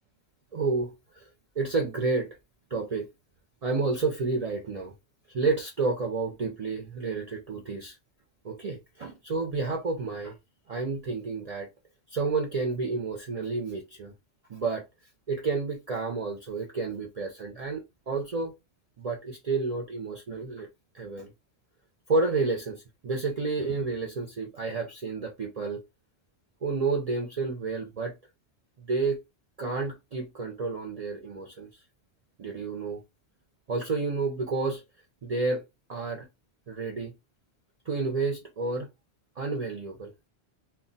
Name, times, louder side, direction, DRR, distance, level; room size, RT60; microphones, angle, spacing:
voice 1, 0.5-1.3 1.6-2.3 2.7-3.1 3.6-4.9 5.3-8.0 8.4-10.4 10.7-11.7 12.1-14.1 14.5-14.8 15.3-18.5 19.0-20.7 20.9-21.3 22.1-25.8 26.6-28.2 28.8-29.2 29.6-31.7 32.4-33.0 33.7-34.8 35.2-35.6 35.9-36.3 36.7-37.1 37.9-38.9 39.4-40.1, right 3 dB, 50° right, 0.5 m, -30 dB
2.3 x 2.1 x 3.8 m
omnidirectional pair, 1.1 m